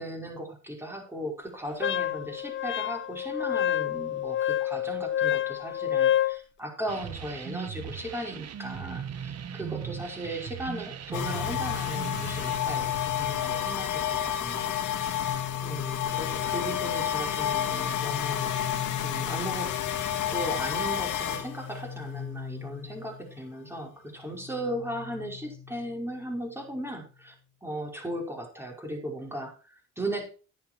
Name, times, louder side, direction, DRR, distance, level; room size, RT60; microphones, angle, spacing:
voice 1, 0.0-14.8 15.6-18.5 19.0-19.7 20.3-27.3 27.6-30.3, right 1 dB, 10° right, 1 dB, 5.2 m, -37 dB
Wind instrument woodwind instrument, 1.8-6.4, left 11 dB, 40° left, 0.6 m, -28 dB
sound 1, 6.9-12.6, right 8 dB, 55° right, 1.4 m, -39 dB
sound 2, 11.1-23.8 24.1-26.6, left 10 dB, 75° left, 2.2 m, -31 dB
11.0 x 10.0 x 4.6 m, 0.35 s
cardioid pair, 90°, 30 cm